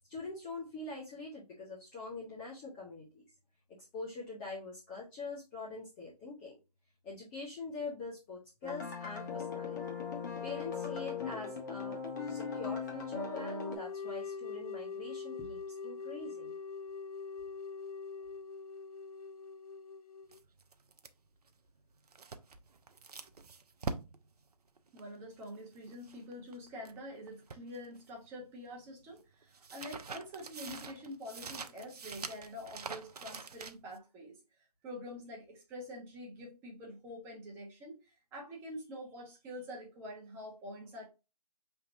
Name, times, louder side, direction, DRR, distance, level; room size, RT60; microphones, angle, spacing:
voice 1, 0.1-3.2 3.9-6.6 7.0-9.8 10.4-16.5, left 3 dB, 10° left, 0.7 m, -44 dB
sound 1, 8.6-13.8, left 5 dB, 30° left, 1.0 m, -38 dB
sound 2, 13.6-20.4, left 5 dB, 70° left, 0.5 m, -43 dB
sound 3, 20.3-27.0 27.3-28.4 28.7-34.0, right 4 dB, 75° right, 0.6 m, -45 dB
voice 2, 24.9-34.4 34.8-38.0 38.3-41.1, equal, 10° right, 1.1 m, -46 dB
5.5 x 3.5 x 2.6 m
figure-of-eight pair, 155°, 20 cm